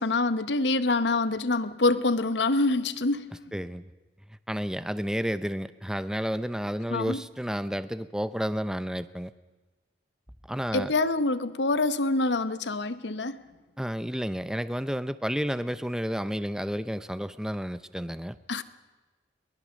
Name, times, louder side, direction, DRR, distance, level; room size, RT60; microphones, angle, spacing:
voice 1, 0.0-3.3 6.9-7.2 10.7-13.4 18.5-18.6, left 2 dB, 75° left, 0.9 m, -26 dB
voice 2, 3.5-3.8 4.5-9.3 10.5-10.9 13.8-18.4, equal, 5° right, 0.6 m, -31 dB
23.0 x 20.0 x 6.4 m
head